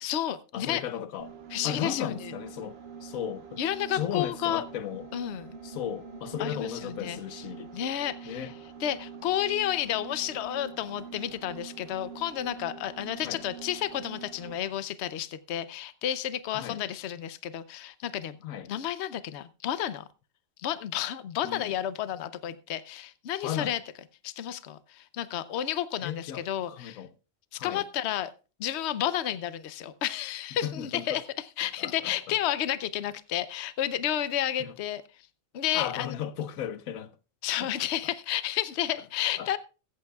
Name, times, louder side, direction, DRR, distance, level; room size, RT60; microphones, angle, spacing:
voice 1, 0.0-0.8 1.5-2.3 3.6-4.6 5.1-5.5 6.4-7.2 7.7-8.5 8.8-18.4 18.7-20.1 20.6-23.8 24.2-27.0 27.5-28.3 28.6-31.2 31.6-35.0 35.5-36.2 37.4-39.6, left 11 dB, 60° left, 0.9 m, -31 dB
voice 2, 0.5-1.3 1.6-3.6 3.9-5.1 5.6-7.7 8.3-8.5 13.2-13.4 16.5-16.8 18.4-18.7 21.4-21.7 23.4-23.7 26.0-27.1 27.6-27.8 30.6-31.2 31.8-32.2 34.6-34.7 35.7-37.1 37.6-37.7 39.4-39.5, left 10 dB, 90° left, 1.2 m, -35 dB
sound 1, 1.2-14.7, right 6 dB, 50° right, 1.2 m, -45 dB
22.5 x 8.4 x 2.3 m
omnidirectional pair, 1.4 m